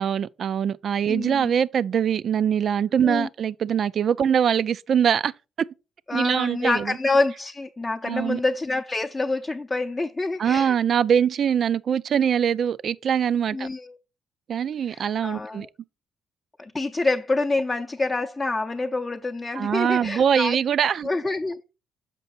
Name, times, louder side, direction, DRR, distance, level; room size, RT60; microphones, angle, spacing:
voice 1, 0.0-5.3 5.6-5.7 6.1-7.0 8.0-8.4 10.4-13.7 14.5-15.7 19.6-21.1, right 8 dB, 60° right, 0.3 m, -23 dB
voice 2, 1.1-1.5 3.0-3.3 6.1-10.8 13.5-14.0 14.9-15.7 16.6-20.6 21.0-21.6, left 3 dB, 25° left, 0.6 m, -27 dB
6.7 x 5.3 x 4.1 m
cardioid pair, 90°, 0 cm